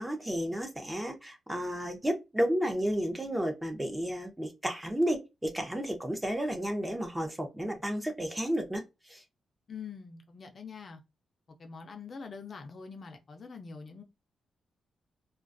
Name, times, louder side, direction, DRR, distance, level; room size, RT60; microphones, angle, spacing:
voice 1, 0.0-8.8 9.1-9.2, equal, 10° right, 0.6 m, -32 dB
voice 2, 9.7-11.0 11.6-14.0, left 5 dB, 45° left, 0.4 m, -44 dB
2.4 x 2.3 x 2.4 m
cardioid pair, 95°, 0 cm